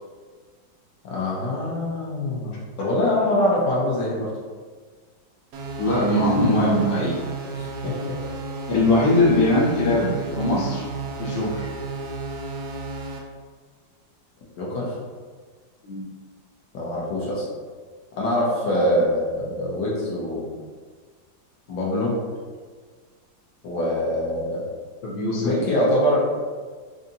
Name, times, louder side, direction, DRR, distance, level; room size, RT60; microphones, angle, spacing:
voice 1, 1.0-4.3 7.6-7.9 9.0-9.2 14.6-14.9 16.7-17.4 18.2-20.5 21.7-22.1 23.6-24.6 25.4-26.2, left 1 dB, 70° left, -6 dB, 1.5 m, -24 dB
sound 1, 5.5-13.2, right 3 dB, 70° right, 1.1 m, -32 dB
voice 2, 5.8-7.2 8.7-10.8 11.2-11.7 15.8-16.1 18.6-18.9 25.0-25.5, left 1 dB, 50° left, -7 dB, 1.2 m, -21 dB
4.8 x 2.6 x 2.7 m, 1.5 s
omnidirectional pair, 2.0 m